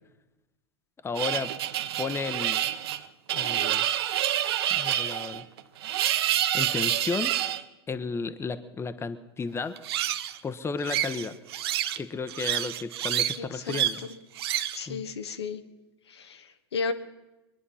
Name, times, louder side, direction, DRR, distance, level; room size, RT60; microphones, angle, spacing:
voice 1, 1.0-1.5 2.0-2.6 3.3-3.8 4.7-5.5 6.5-7.3 7.9-9.7 10.4-11.3 12.0-14.1 14.9-15.0, left 4 dB, 20° left, 11 dB, 0.9 m, -33 dB
sound 1, 1.2-7.6 9.8-10.4 10.8-12.0 12.3-13.4 13.7-14.0 14.4-14.8, right 12 dB, 70° right, 0.7 m, -28 dB
voice 2, 13.4-14.2 14.7-15.6 16.1-16.9, left 4 dB, 80° left, 8 dB, 1.1 m, -34 dB
23.5 x 9.9 x 5.6 m, 1.0 s
hypercardioid pair, 90°, 14 cm